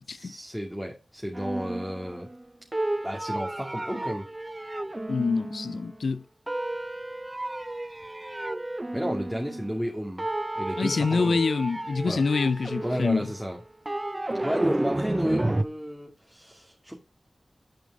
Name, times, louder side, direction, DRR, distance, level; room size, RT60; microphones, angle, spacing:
voice 1, 0.1-2.3 3.0-4.3 8.9-10.3 10.5-11.4 12.1-12.2 12.8-13.6 14.4-16.9, equal, ahead, 2.4 m, -32 dB
sound 1, 1.4-2.4 2.7-6.0 6.5-9.9 10.2-15.6, right 1 dB, 30° right, 0.5 m, -32 dB
voice 2, 5.1-6.2 10.8-13.3, left 4 dB, 90° left, 0.5 m, -26 dB
11.5 x 5.3 x 4.9 m
cardioid pair, 45°, 0 cm